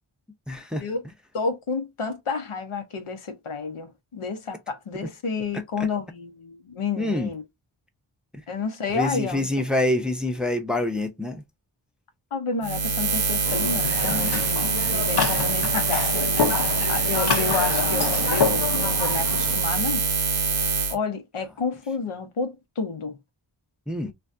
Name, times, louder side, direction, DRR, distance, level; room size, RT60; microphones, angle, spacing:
voice 1, 0.5-0.9 5.0-5.1 5.5-5.9 7.0-7.3 8.3-8.4 8.9-11.4 23.9-24.1, left 1 dB, ahead, 0.5 m, -26 dB
voice 2, 1.3-7.4 8.5-9.5 12.3-20.1 20.9-23.2, left 4 dB, 90° left, 0.7 m, -30 dB
Buzz, 12.6-21.0, right 4 dB, 75° right, 0.7 m, -24 dB
sound 1, 13.4-19.6, left 5 dB, 55° left, 0.6 m, -27 dB
3.3 x 2.2 x 2.5 m
wide cardioid pair, 45°, 49 cm